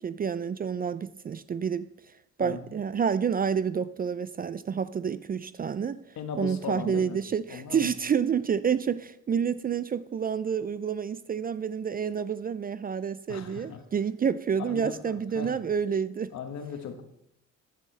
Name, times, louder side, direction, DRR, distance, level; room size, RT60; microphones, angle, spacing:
voice 1, 0.0-1.9 2.4-6.0 6.4-16.3, right 7 dB, 30° right, 0.4 m, -29 dB
voice 2, 2.4-2.7 6.2-7.2 7.5-7.9 13.3-13.8 14.6-15.6 16.3-17.0, left 6 dB, 65° left, 1.3 m, -38 dB
14.0 x 7.8 x 3.3 m
cardioid pair, 90°, 30 cm